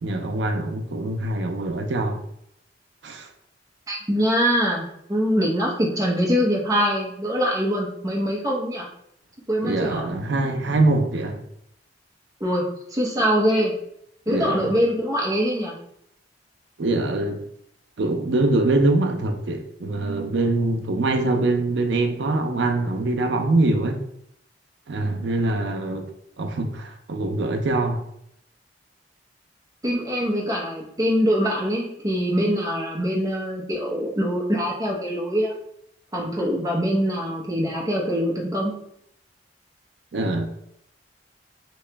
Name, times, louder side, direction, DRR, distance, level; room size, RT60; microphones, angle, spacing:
voice 1, 0.0-2.2 3.0-3.3 9.6-11.4 14.3-14.6 16.8-17.4 18.0-24.0 24.9-26.0 26.4-28.0 40.1-40.5, right 2 dB, 80° right, 0.5 m, -23 dB
voice 2, 3.9-8.9 9.5-10.1 12.4-12.7 12.9-13.7 14.3-15.7 29.8-35.5 36.1-38.8, equal, 20° right, 0.8 m, -23 dB
3.1 x 2.9 x 3.3 m
head